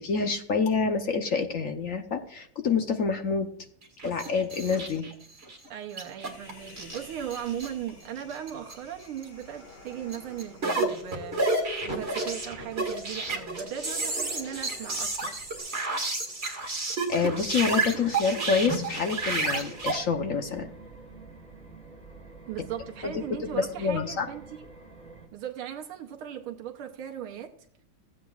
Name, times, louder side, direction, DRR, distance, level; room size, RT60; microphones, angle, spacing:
voice 1, 0.0-3.5 4.0-5.1 17.1-20.7 23.0-23.2 23.5-24.3, left 5 dB, 55° left, 6 dB, 0.9 m, -27 dB
sound 1, 3.8-5.7 6.0-7.9 8.2-8.7 9.0-9.2 10.1-20.0, right 3 dB, 30° right, 2.0 m, -31 dB
voice 2, 5.7-11.4 11.8-15.4 22.5-24.7 25.3-27.5, right 10 dB, 85° right, 2 dB, 1.7 m, -37 dB
Human voice, 6.2-15.6, left 3 dB, 90° left, 5.1 m, -46 dB
sound 2, 17.2-25.3, right 2 dB, 5° left, 3.2 m, -48 dB
15.5 x 8.5 x 2.4 m, 0.66 s
omnidirectional pair, 2.3 m